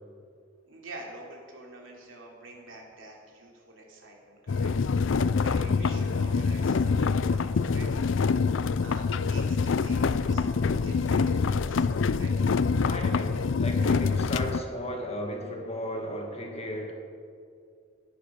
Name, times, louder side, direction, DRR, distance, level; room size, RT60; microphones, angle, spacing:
voice 1, 0.7-8.1 8.4-11.9 12.1-12.3, right 2 dB, 85° right, -1 dB, 3.2 m, -47 dB
sound 1, 4.5-14.6, left 5 dB, 75° left, 0.5 m, -25 dB
voice 2, 12.9-16.9, equal, 35° left, 2 dB, 1.9 m, -35 dB
16.0 x 9.6 x 6.9 m, 2.3 s
head